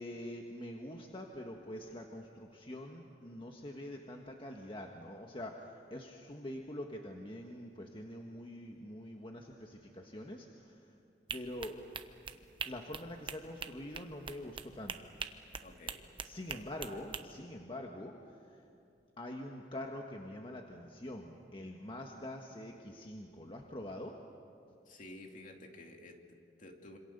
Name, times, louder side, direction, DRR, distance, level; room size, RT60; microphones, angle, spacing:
voice 1, 0.0-10.9 11.3-11.8 12.7-15.0 16.2-18.6 19.2-24.1, left 1 dB, 30° left, 1 dB, 1.5 m, -45 dB
sound 1, 11.3-17.2, right 5 dB, 30° right, 1.0 m, -43 dB
voice 2, 15.6-16.0 16.5-16.7 24.9-27.0, left 1 dB, 50° left, 3 dB, 2.6 m, -52 dB
27.0 x 26.5 x 6.8 m, 2.5 s
head